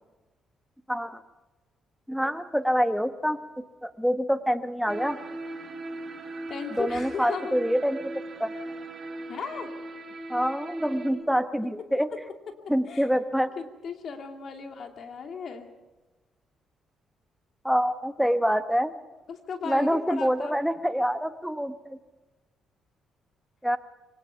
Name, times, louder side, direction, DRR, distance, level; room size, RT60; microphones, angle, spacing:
voice 1, 0.9-1.2 2.1-5.2 6.8-8.1 8.4-8.5 10.3-12.1 12.7-13.5 17.6-18.9 19.6-22.0 23.6-23.8, equal, ahead, 9 dB, 1.2 m, -26 dB
sound 1, 4.9-11.1, right 2 dB, 40° right, 5.0 m, -39 dB
voice 2, 6.5-7.5 9.3-9.7 12.9-13.1 13.6-15.7 19.3-20.6, left 5 dB, 55° left, 5 dB, 2.6 m, -36 dB
24.0 x 18.5 x 5.8 m, 1.1 s
cardioid pair, 90°, 0 cm